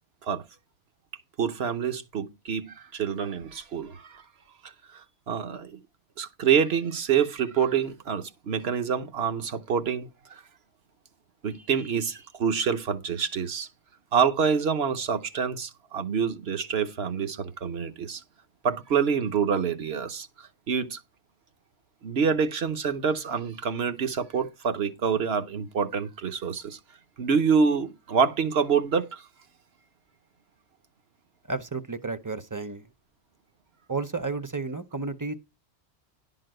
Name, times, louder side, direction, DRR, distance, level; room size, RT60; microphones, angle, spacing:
voice 1, 1.4-4.2 4.6-5.8 6.2-10.4 11.4-13.7 14.1-18.2 18.6-21.0 22.0-26.8 27.2-29.3, right 6 dB, 65° right, 1.2 m, -27 dB
voice 2, 31.5-32.9 33.9-35.3, right 3 dB, 20° right, 0.6 m, -32 dB
11.5 x 3.9 x 7.7 m
omnidirectional pair, 1.2 m